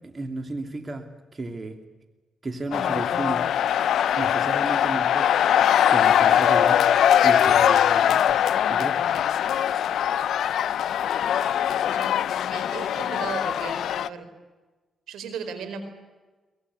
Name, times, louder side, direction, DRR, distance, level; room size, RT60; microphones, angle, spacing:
voice 1, 0.0-1.8 2.4-3.5 4.1-5.3 5.9-6.8 7.2-9.0, right 2 dB, 35° right, 6 dB, 2.9 m, -33 dB
sound 1, 2.7-14.1, left 10 dB, 75° left, 0.7 m, -21 dB
voice 2, 12.5-14.3 15.1-15.8, right 6 dB, 80° right, 9 dB, 4.4 m, -36 dB
23.5 x 20.0 x 9.7 m, 1.2 s
supercardioid pair, 60°, 0 cm